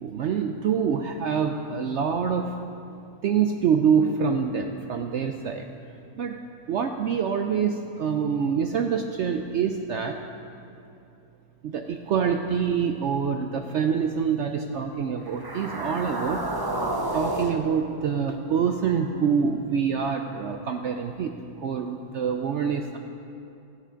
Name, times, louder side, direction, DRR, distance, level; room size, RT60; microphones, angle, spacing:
voice 1, 0.0-2.4 3.2-5.7 6.2-6.4 6.7-10.2 11.6-16.4 17.1-21.3 21.6-23.0, right 7 dB, 75° right, 5 dB, 0.6 m, -26 dB
sound 1, 15.3-19.6, right 1 dB, 40° right, 0.3 m, -32 dB
13.5 x 9.9 x 5.1 m, 2.6 s
omnidirectional pair, 1.8 m